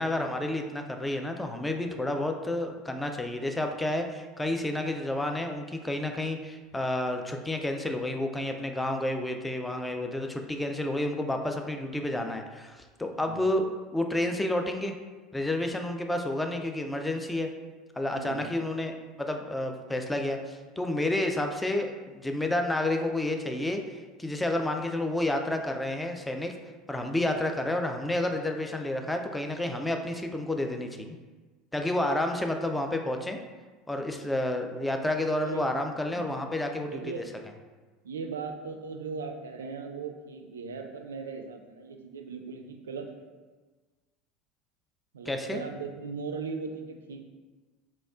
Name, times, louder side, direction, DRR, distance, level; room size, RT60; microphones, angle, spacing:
voice 1, 0.0-14.9 15.3-17.5 18.0-18.9 19.2-26.5 26.9-31.2 31.7-33.4 33.9-37.2 45.3-45.6, left 1 dB, 10° left, 4 dB, 0.4 m, -30 dB
voice 2, 13.1-13.5 18.2-18.5 35.4-35.7 36.1-36.3 36.9-37.3 38.0-43.1 45.1-47.2, right 5 dB, 70° right, 4 dB, 0.3 m, -38 dB
4.0 x 3.0 x 2.4 m, 1.3 s
figure-of-eight pair, 70°, 0 cm